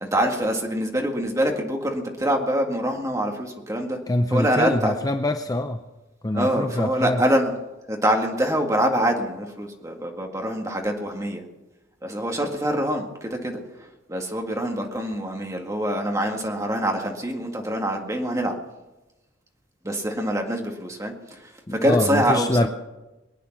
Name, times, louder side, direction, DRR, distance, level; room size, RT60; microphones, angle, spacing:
voice 1, 0.0-4.0 4.3-4.9 6.3-7.5 7.9-11.4 12.0-13.6 14.1-18.6 19.8-22.7, right 1 dB, 15° right, 2 dB, 1.9 m, -25 dB
voice 2, 4.1-5.8 6.2-7.2 21.8-22.7, left 1 dB, 20° left, 7 dB, 0.5 m, -24 dB
22.5 x 9.2 x 5.9 m, 1.0 s
head